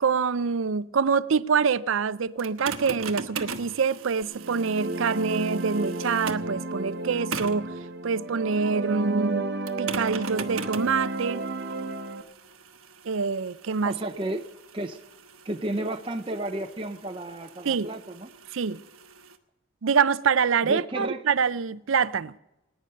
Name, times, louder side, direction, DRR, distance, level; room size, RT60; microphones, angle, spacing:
voice 1, 0.0-7.7 8.0-9.4 9.8-11.4 13.0-13.9 17.6-17.9 18.5-18.8 19.8-22.3, right 5 dB, 70° right, 0.5 m, -25 dB
sound 1, 2.4-6.6 7.3-7.7 9.7-19.4, right 5 dB, 90° right, 1.1 m, -40 dB
sound 2, 4.3-12.2, right 2 dB, 50° right, 1.0 m, -32 dB
voice 2, 13.8-14.4 14.7-15.0 15.4-18.3 20.6-21.2, right 1 dB, 25° right, 0.6 m, -32 dB
19.0 x 10.0 x 6.6 m
head